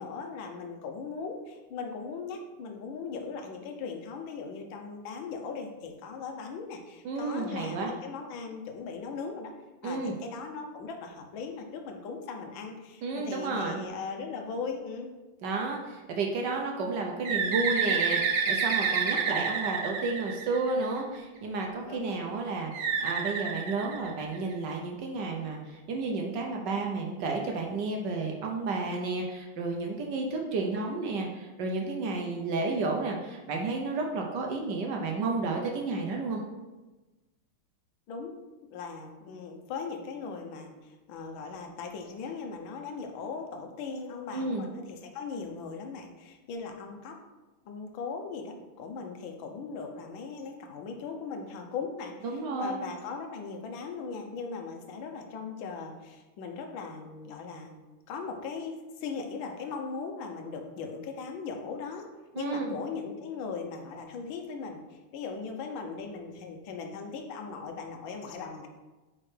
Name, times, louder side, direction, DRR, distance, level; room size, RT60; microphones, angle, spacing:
voice 1, 0.0-9.5 9.8-15.1 21.9-22.2 32.1-32.3 38.1-38.3 38.7-47.2 47.7-57.8 58.1-62.1 62.4-68.7, left 5 dB, 70° left, 3 dB, 1.5 m, -39 dB
voice 2, 7.0-7.9 9.8-10.1 13.0-13.8 15.4-36.4 44.3-44.7 52.2-52.8 62.3-62.7, right 3 dB, 65° right, 1 dB, 1.2 m, -32 dB
Bird, 17.2-21.0 22.7-24.5, right 6 dB, 80° right, 1.7 m, -29 dB
8.5 x 4.3 x 3.3 m, 1.1 s
omnidirectional pair, 2.4 m